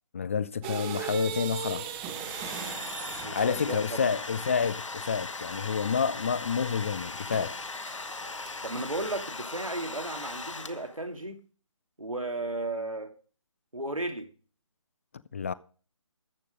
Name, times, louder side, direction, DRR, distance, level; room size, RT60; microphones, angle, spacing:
voice 1, 0.1-1.9 3.3-7.6 15.3-15.5, left 6 dB, 25° left, 0.5 m, -29 dB
sound 1, 0.6-3.7 7.3-7.5 7.9-8.8, right 9 dB, 10° right, 1.0 m, -37 dB
Domestic sounds home sounds, 1.9-11.1, left 3 dB, 65° left, 1.4 m, -39 dB
voice 2, 3.2-4.2 8.6-11.4 12.0-13.1 13.7-14.3, right 2 dB, 85° right, 2.5 m, -34 dB
14.0 x 8.4 x 5.1 m
figure-of-eight pair, 150°, 17 cm